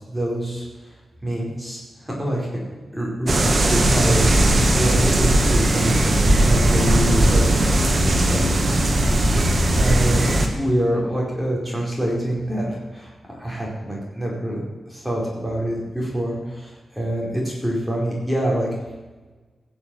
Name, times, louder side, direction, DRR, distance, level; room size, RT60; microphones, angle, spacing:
voice 1, 0.1-0.6 1.2-2.5 2.9-3.3 3.6-7.9 8.3-8.7 9.1-9.5 9.7-10.2 10.5-13.1 13.4-14.6 14.9-18.7, right 1 dB, ahead, -4 dB, 4.7 m, -26 dB
sound 1, 3.3-10.5, right 1 dB, 35° right, 1.8 m, -18 dB
16.0 x 7.2 x 7.8 m, 1.2 s
wide cardioid pair, 145°, 0 cm